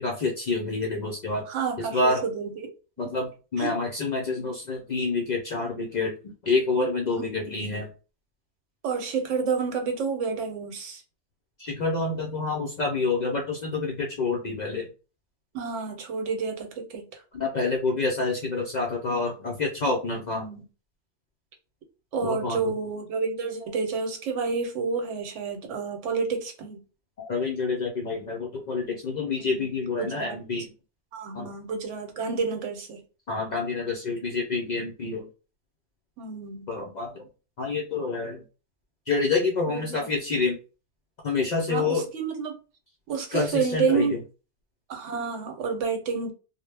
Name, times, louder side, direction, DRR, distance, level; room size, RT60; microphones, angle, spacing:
voice 1, 0.0-1.4 1.8-2.2 3.0-7.9 11.6-14.9 17.3-20.5 22.2-22.7 27.2-30.7 31.3-31.5 33.3-35.3 36.7-37.3 37.6-38.4 39.1-40.6 41.2-42.1 43.3-44.2, left 3 dB, 65° left, 0.4 m, -28 dB
voice 2, 1.5-2.7 3.6-3.7 7.1-7.6 8.8-11.0 15.5-17.2 20.3-20.6 22.1-26.8 29.2-29.7 30.0-30.4 31.1-33.0 36.2-36.7 39.7-40.1 41.7-42.6 43.1-44.1 44.9-46.3, right 5 dB, 85° right, 1.0 m, -30 dB
2.1 x 2.0 x 3.2 m
omnidirectional pair, 1.2 m